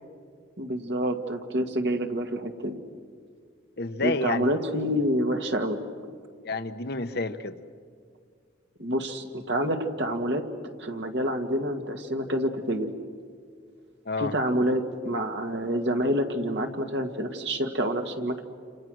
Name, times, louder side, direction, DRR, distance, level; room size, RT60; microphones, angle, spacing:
voice 1, 0.6-2.8 4.0-5.8 8.8-10.4 10.8-12.9 14.2-18.4, equal, 65° right, 5 dB, 1.9 m, -27 dB
voice 2, 3.8-4.5 6.4-7.5 14.1-14.3, left 3 dB, 60° left, 9 dB, 1.0 m, -29 dB
29.0 x 28.0 x 6.3 m, 2.1 s
head